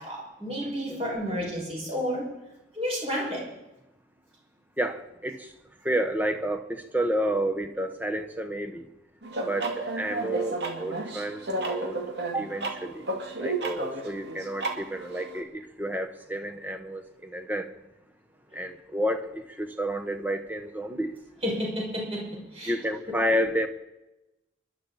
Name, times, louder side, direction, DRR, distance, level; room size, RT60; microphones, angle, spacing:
voice 1, 0.0-2.2 2.7-3.4 21.4-22.7, equal, 30° right, -3 dB, 6.1 m, -31 dB
voice 2, 4.8-5.5 5.8-8.8 9.4-12.0 12.3-13.0 13.4-17.7 18.5-21.1 22.7-23.7, right 1 dB, 10° right, 6 dB, 1.1 m, -30 dB
sound 1, 9.2-15.4, right 2 dB, 65° right, 2.1 m, -32 dB
28.5 x 11.5 x 4.2 m, 0.98 s
head